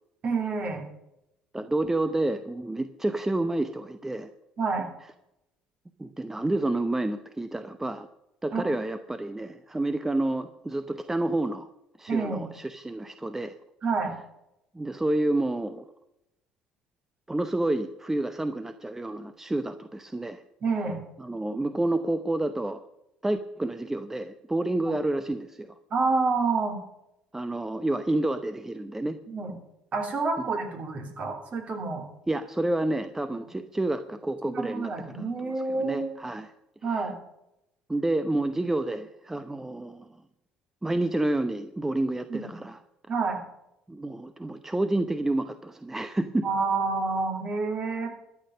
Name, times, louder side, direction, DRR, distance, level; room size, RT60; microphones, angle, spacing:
voice 1, 0.2-0.9 4.6-4.9 8.5-8.7 12.1-12.4 13.8-14.1 20.6-21.0 24.8-24.9 25.9-26.8 29.3-29.5 29.9-32.0 34.5-36.1 36.8-37.2 42.3-42.5 43.1-43.4 46.4-48.1, right 4 dB, 45° right, 2 dB, 3.3 m, -28 dB
voice 2, 1.5-4.3 6.0-8.1 8.4-11.7 12.0-13.6 14.7-15.8 17.3-20.4 21.2-22.8 23.2-25.7 27.3-29.2 32.3-36.5 36.9-37.1 37.9-40.1 40.8-42.8 43.9-46.5, right 2 dB, 15° right, 10 dB, 0.8 m, -29 dB
13.0 x 8.4 x 6.6 m, 0.84 s
hypercardioid pair, 60°, 3 cm